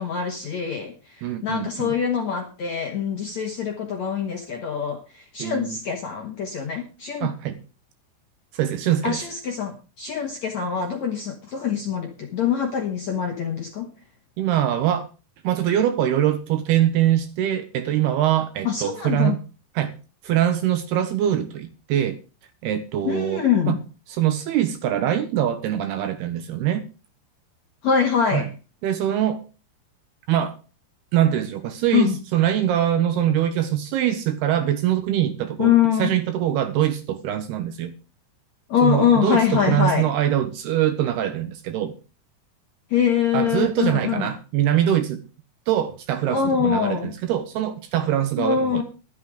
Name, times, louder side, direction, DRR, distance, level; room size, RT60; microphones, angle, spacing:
voice 1, 0.0-7.3 9.0-13.9 18.6-19.4 23.1-23.8 27.8-28.5 31.9-32.2 35.6-36.1 38.7-40.1 42.9-44.3 46.3-47.1 48.4-48.8, left 7 dB, 65° left, 3 dB, 1.8 m, -24 dB
voice 2, 1.2-2.0 5.4-5.8 7.2-7.6 8.5-9.2 14.4-15.1 15.4-19.4 19.8-19.9 20.2-22.2 22.6-23.7 24.1-26.9 28.3-28.5 28.8-29.4 30.3-30.6 31.1-35.7 36.0-37.9 38.8-41.9 43.3-45.2 45.7-48.8, right 11 dB, 75° right, 10 dB, 2.6 m, -23 dB
11.5 x 11.5 x 5.0 m, 0.33 s
omnidirectional pair, 5.4 m